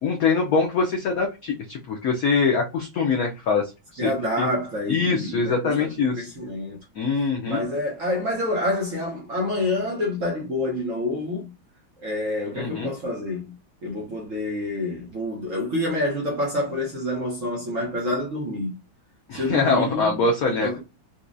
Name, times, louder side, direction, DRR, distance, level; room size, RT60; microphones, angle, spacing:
voice 1, 0.0-4.1 4.4-4.5 4.9-6.3 7.0-7.6 12.5-12.9 19.3-20.8, left 4 dB, 80° left, 0.8 m, -23 dB
voice 2, 4.0-6.8 7.4-11.5 12.0-13.5 13.8-18.8 19.3-20.8, left 1 dB, 50° right, 1.0 m, -28 dB
4.1 x 2.3 x 2.5 m
omnidirectional pair, 2.2 m